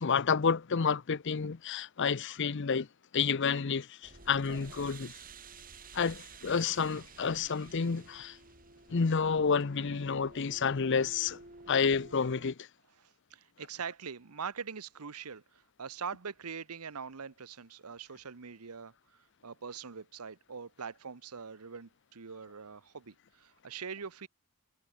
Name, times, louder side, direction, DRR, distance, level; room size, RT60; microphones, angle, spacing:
voice 1, 0.0-2.9 3.1-5.1 5.9-8.4 8.9-11.4 11.7-12.7, left 5 dB, 55° left, 0.6 m, -30 dB
sound 1, 4.0-12.5, right 4 dB, 40° right, 4.8 m, -52 dB
voice 2, 13.0-18.9 19.4-24.3, right 6 dB, 90° right, 1.0 m, -43 dB
head